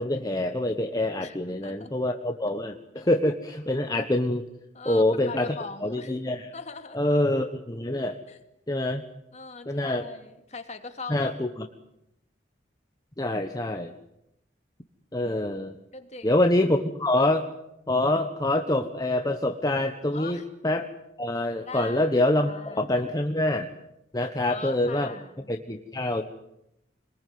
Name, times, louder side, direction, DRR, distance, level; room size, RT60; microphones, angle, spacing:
voice 1, 0.0-4.4 4.8-5.5 5.8-6.5 6.9-8.2 8.7-9.0 9.7-10.1 11.1-11.5 13.2-13.9 15.1-15.7 16.2-17.5 17.9-20.9 21.2-23.7 24.1-25.1 25.5-26.2, left 1 dB, 20° left, 5 dB, 1.3 m, -25 dB
voice 2, 1.2-1.9 3.0-3.1 4.7-6.2 6.5-7.0 8.3-8.4 9.3-11.3 15.9-16.4 20.1-20.4 21.6-22.1 22.4-22.9 24.4-25.5, left 4 dB, 35° left, 6 dB, 2.6 m, -41 dB
27.0 x 21.0 x 9.6 m, 0.83 s
head